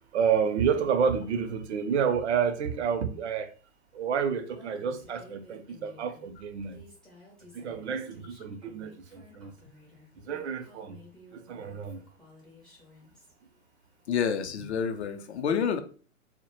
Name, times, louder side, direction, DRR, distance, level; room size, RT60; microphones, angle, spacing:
voice 1, 0.1-3.5 3.9-6.8 7.5-9.5 10.3-11.0 11.3-12.0, right 7 dB, 60° right, 0.5 m, -29 dB
Female speech woman speaking, 4.5-13.3, left 2 dB, ahead, 0.4 m, -54 dB
voice 2, 14.1-15.8, left 7 dB, 55° left, 0.5 m, -28 dB
2.1 x 2.0 x 2.9 m
figure-of-eight pair, 115°, 40 cm